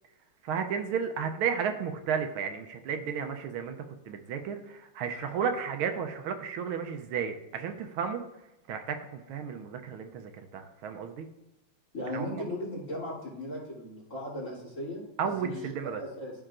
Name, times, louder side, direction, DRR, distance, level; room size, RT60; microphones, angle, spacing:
voice 1, 0.4-3.8 4.0-8.2 8.7-11.3 12.1-12.5 15.2-16.0, right 7 dB, 80° right, 6 dB, 1.5 m, -33 dB
voice 2, 11.9-15.0 15.4-16.3, left 1 dB, 35° left, -7 dB, 3.2 m, -37 dB
13.5 x 5.6 x 2.5 m, 0.94 s
omnidirectional pair, 2.4 m